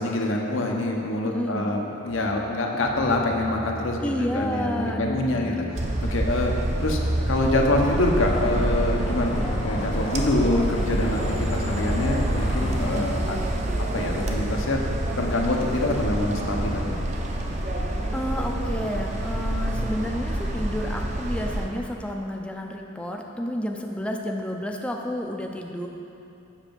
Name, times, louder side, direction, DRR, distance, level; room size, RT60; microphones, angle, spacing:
voice 1, 0.0-5.7 6.0-7.0 7.3-13.6 13.9-14.8 15.2-17.0, left 2 dB, 85° left, 0 dB, 0.9 m, -25 dB
voice 2, 1.2-1.7 4.0-5.9 12.8-13.1 18.1-25.9, left 1 dB, 5° left, 1 dB, 0.4 m, -30 dB
sound 1, 2.1-10.4 11.0-11.8 13.7-15.4 16.5-19.1, right 1 dB, 75° right, 1.5 m, -40 dB
sound 2, 5.7-21.7, right 1 dB, 35° right, 0.6 m, -27 dB
sound 3, 7.8-13.0, left 1 dB, 30° left, 0.7 m, -32 dB
7.3 x 5.8 x 5.2 m, 2.8 s
head